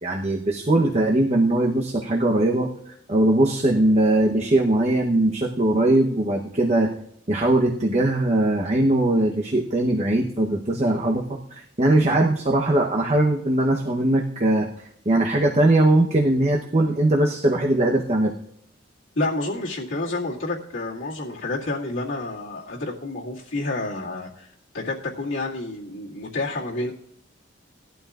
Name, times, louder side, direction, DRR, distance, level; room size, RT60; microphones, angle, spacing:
voice 1, 0.0-6.9 7.3-14.7 15.1-18.3, right 1 dB, 35° right, 1 dB, 0.9 m, -20 dB
voice 2, 19.1-26.9, left 2 dB, 90° left, -6 dB, 2.1 m, -29 dB
18.0 x 11.5 x 2.4 m, 0.72 s
head